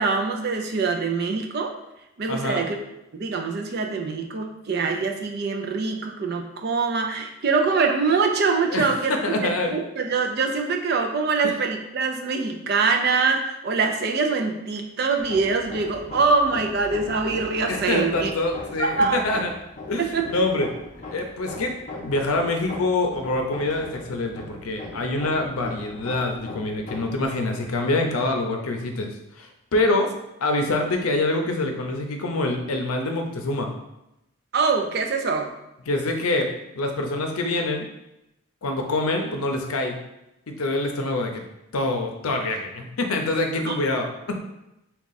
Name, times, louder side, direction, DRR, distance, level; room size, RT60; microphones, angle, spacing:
voice 1, 0.0-1.7 2.2-2.8 3.1-18.3 18.8-19.2 20.0-20.3 34.5-35.5 43.7-43.8, right 4 dB, 45° right, 4 dB, 0.4 m, -24 dB
voice 2, 2.3-2.7 8.7-9.7 11.4-11.5 17.7-19.5 19.9-20.7 21.1-29.1 29.4-30.1 30.4-33.7 35.9-36.5 36.7-37.9 38.6-40.0 40.5-41.4 41.7-44.4, left 2 dB, 80° left, 4 dB, 0.6 m, -25 dB
Hammer, 15.2-27.3, left 2 dB, 35° left, 0.5 m, -39 dB
3.6 x 2.3 x 4.0 m, 0.90 s
head